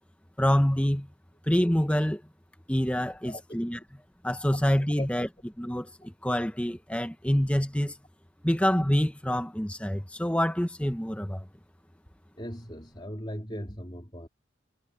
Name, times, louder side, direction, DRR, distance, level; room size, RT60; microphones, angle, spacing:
voice 1, 0.4-1.1 1.5-2.2 2.7-3.8 4.2-5.3 5.6-7.9 8.4-11.4, equal, 5° left, 1.1 m, -26 dB
voice 2, 3.2-3.6 5.0-5.1 12.4-14.3, equal, 25° left, 3.5 m, -38 dB
head